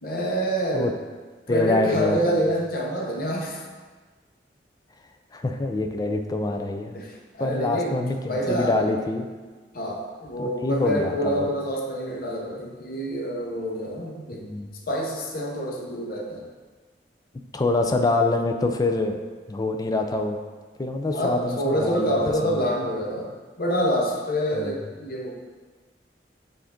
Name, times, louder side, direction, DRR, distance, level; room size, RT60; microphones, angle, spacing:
voice 1, 0.0-0.9 1.5-3.6 6.9-7.9 8.3-8.9 9.7-14.4 14.9-16.4 21.1-23.3 23.6-25.3, equal, 60° left, -1 dB, 0.7 m, -27 dB
voice 2, 1.5-2.4 5.3-7.0 7.4-9.3 10.4-11.5 14.3-14.7 17.5-19.2 19.5-20.4 20.8-22.2 22.5-22.7 24.5-24.7, left 2 dB, 20° left, 5 dB, 0.3 m, -25 dB
5.7 x 2.6 x 3.6 m, 1.4 s
head